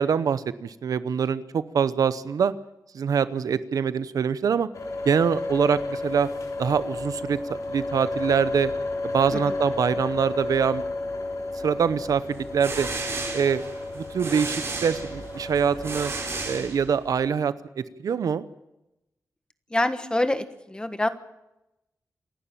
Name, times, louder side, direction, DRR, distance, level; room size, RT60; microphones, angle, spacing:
voice 1, 0.0-2.5 2.9-4.7 5.0-6.3 6.6-8.7 9.0-10.8 11.6-12.9 13.3-13.6 13.9-16.1 16.4-18.4, right 7 dB, 90° right, 15 dB, 0.8 m, -24 dB
sound 1, 4.7-16.6, left 2 dB, 70° left, 3.8 m, -32 dB
sound 2, 12.3-17.2, right 3 dB, 45° right, 5.3 m, -34 dB
voice 2, 19.7-21.1, left 1 dB, 15° left, 10 dB, 1.4 m, -26 dB
27.0 x 11.5 x 9.0 m, 0.93 s
wide cardioid pair, 120°, 6 cm